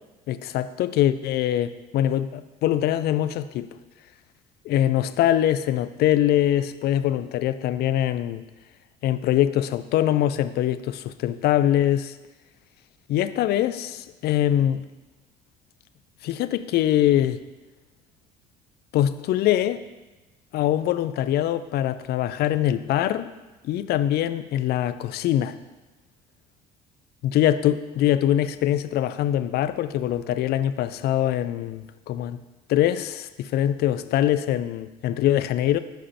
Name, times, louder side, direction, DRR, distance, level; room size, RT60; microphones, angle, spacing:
voice 1, 0.3-3.7 4.6-8.4 9.0-12.1 13.1-14.8 16.2-17.4 18.9-19.8 20.5-23.3 23.6-25.6 27.2-32.4 32.7-35.8, left 12 dB, 50° left, 12 dB, 0.5 m, -23 dB
14.5 x 5.0 x 2.8 m, 1.1 s
hypercardioid pair, 60°, 21 cm